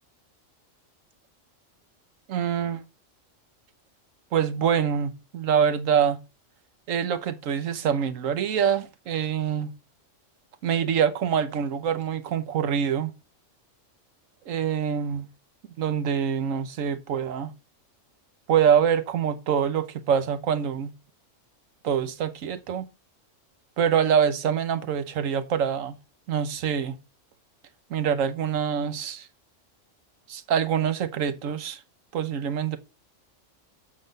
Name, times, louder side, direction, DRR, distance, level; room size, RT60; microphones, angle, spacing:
voice 1, 2.3-2.8 4.3-6.2 6.9-9.7 10.6-13.1 14.5-15.3 15.8-17.5 18.5-20.9 21.8-22.9 23.8-26.0 26.3-26.9 27.9-29.3 30.3-31.8 32.1-32.8, right 8 dB, 85° right, 1.2 m, -25 dB
7.3 x 3.8 x 6.6 m
omnidirectional pair, 1.3 m